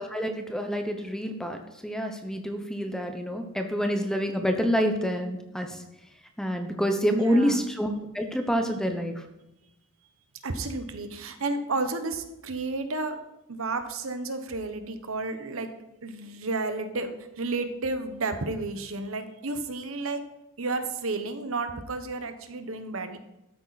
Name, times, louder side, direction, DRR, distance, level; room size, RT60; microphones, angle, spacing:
voice 1, 0.0-5.8 6.4-7.9 8.1-9.2, equal, 5° left, 5 dB, 1.0 m, -27 dB
voice 2, 7.1-7.6 10.4-13.2 13.5-15.7 16.0-20.2 20.6-23.2, right 3 dB, 65° right, 8 dB, 1.1 m, -32 dB
13.0 x 8.9 x 4.2 m, 0.90 s
head